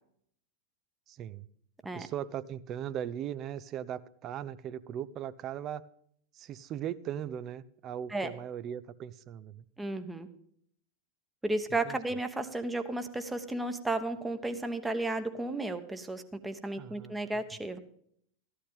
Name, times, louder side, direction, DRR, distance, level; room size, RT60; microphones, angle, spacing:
voice 1, 1.1-1.5 1.9-5.8 6.3-9.6 11.8-12.0 16.8-17.4, right 10 dB, 35° right, 17 dB, 0.6 m, -39 dB
voice 2, 9.8-10.3 11.4-17.8, right 2 dB, 10° right, 9 dB, 1.1 m, -33 dB
14.5 x 11.5 x 3.6 m, 0.65 s
figure-of-eight pair, 90°, 0 cm